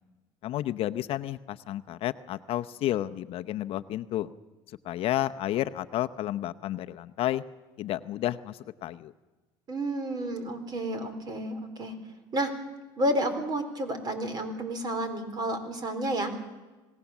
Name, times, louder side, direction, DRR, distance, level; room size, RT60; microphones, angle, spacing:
voice 1, 0.4-4.3 4.8-7.4 7.8-9.1, left 13 dB, 50° left, 10 dB, 0.7 m, -31 dB
voice 2, 9.7-11.9 12.3-12.5 13.0-16.3, right 1 dB, 35° right, 9 dB, 4.0 m, -30 dB
27.0 x 18.0 x 7.2 m, 1.2 s
cardioid pair, 125°, 12 cm